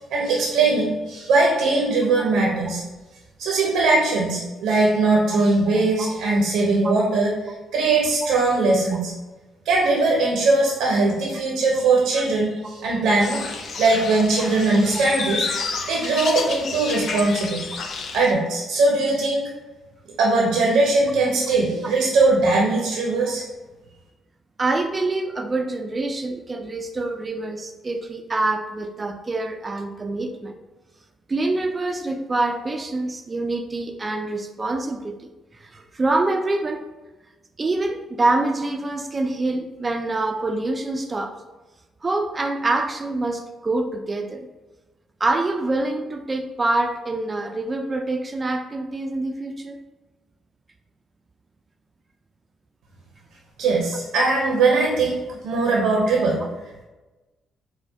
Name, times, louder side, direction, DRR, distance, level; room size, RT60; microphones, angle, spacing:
voice 1, 0.1-2.8 3.4-7.3 7.7-9.1 9.6-13.5 13.8-17.7 18.1-19.4 20.2-23.4 53.6-56.4, right 3 dB, 90° right, -1 dB, 0.6 m, -20 dB
sound 1, 13.2-18.3, left 4 dB, 60° left, 0.4 m, -30 dB
voice 2, 24.6-30.5 31.3-35.3 35.6-36.8 37.6-41.4 42.0-44.5 45.2-49.8, right 2 dB, 30° right, 5 dB, 0.3 m, -25 dB
4.5 x 2.1 x 2.7 m, 1.2 s
cardioid pair, 90°, 0 cm